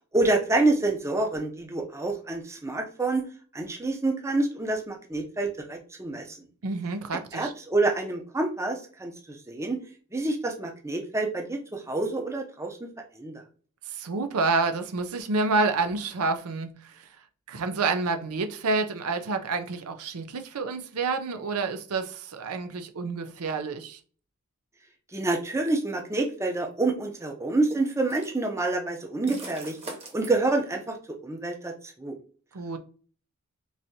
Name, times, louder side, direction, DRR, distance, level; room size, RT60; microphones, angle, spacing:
voice 1, 0.1-3.2 3.5-6.4 7.3-9.8 10.1-12.9 13.2-13.4 25.1-29.8 30.1-31.7 32.0-32.2, right 2 dB, 15° right, 0.5 m, -27 dB
voice 2, 6.6-7.5 13.9-17.0 17.5-24.0 32.5-32.8, right 3 dB, 85° right, 0.5 m, -28 dB
sound 1, 26.2-26.3 27.7-28.4 29.3-30.3, right 1 dB, 30° right, 0.9 m, -40 dB
4.7 x 2.7 x 2.7 m
head